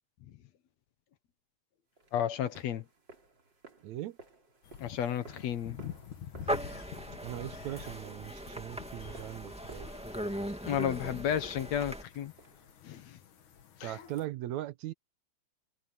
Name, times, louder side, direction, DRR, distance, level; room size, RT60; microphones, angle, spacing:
sound 1, 2.0-13.1, right 3 dB, 35° right, 4.0 m, -58 dB
voice 1, 2.1-2.9 4.8-5.8 10.7-12.3 12.8-13.2 13.8-14.0, left 10 dB, 70° left, 2.4 m, -32 dB
voice 2, 3.8-4.2 7.2-9.9 13.8-14.9, right 14 dB, 75° right, 2.1 m, -39 dB
sound 2, 4.6-14.2, left 8 dB, 90° left, 3.5 m, -49 dB
sound 3, 6.5-12.0, equal, 5° right, 1.6 m, -39 dB
omnidirectional pair, 3.3 m